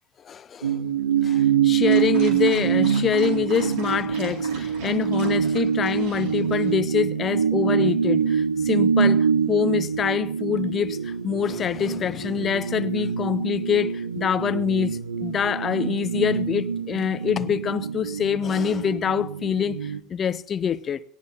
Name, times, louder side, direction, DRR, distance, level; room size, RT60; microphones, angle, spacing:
voice 1, 0.2-0.8 1.2-21.0, left 8 dB, 30° left, 0.5 m, -25 dB
sound 1, 0.6-20.0, right 7 dB, 80° right, 0.7 m, -25 dB
Dog, 1.8-6.8, right 3 dB, 55° right, 4.4 m, -42 dB
18.5 x 18.0 x 2.8 m
figure-of-eight pair, 75°, 0 cm